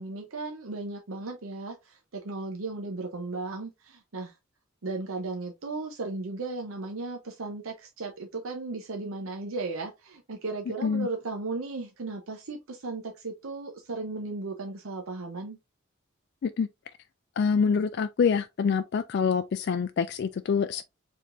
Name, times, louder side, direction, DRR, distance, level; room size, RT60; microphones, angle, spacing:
voice 1, 0.0-4.3 4.8-15.6, right 3 dB, 85° right, 0.8 m, -36 dB
voice 2, 17.4-20.8, left 6 dB, 55° left, 0.3 m, -26 dB
4.6 x 3.6 x 2.6 m
head